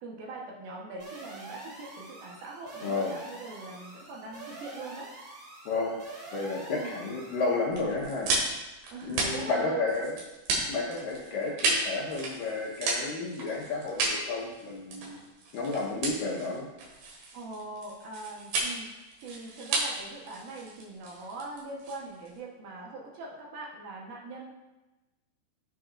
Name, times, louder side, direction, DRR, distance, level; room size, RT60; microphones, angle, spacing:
voice 1, 0.0-5.1 6.7-6.9 8.9-10.0 17.3-24.5, right 3 dB, 70° right, -2 dB, 2.8 m, -42 dB
sound 1, 1.0-7.7, right 3 dB, 35° right, 3.8 m, -46 dB
voice 2, 2.8-3.2 5.7-6.0 6.3-8.3 9.0-10.2 10.6-15.2 15.5-16.7, left 3 dB, 70° left, -2 dB, 2.4 m, -32 dB
sound 2, 7.7-22.4, right 2 dB, 90° right, 4.0 m, -33 dB
14.0 x 6.8 x 2.5 m, 1.1 s
omnidirectional pair, 4.7 m